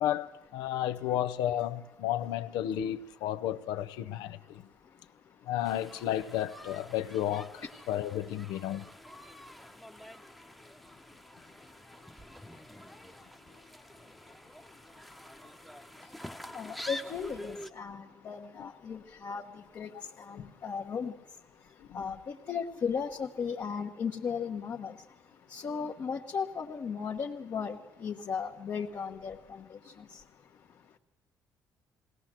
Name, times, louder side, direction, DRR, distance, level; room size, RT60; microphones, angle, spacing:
voice 1, 0.0-4.7 5.5-8.9 21.9-22.0, left 11 dB, 85° left, 0.7 m, -32 dB
voice 2, 4.4-5.5 9.2-31.0, left 6 dB, 55° left, 1.2 m, -39 dB
sound 1, 5.6-17.7, left 1 dB, ahead, 1.0 m, -47 dB
20.0 x 18.0 x 7.5 m
supercardioid pair, 70°, 7 cm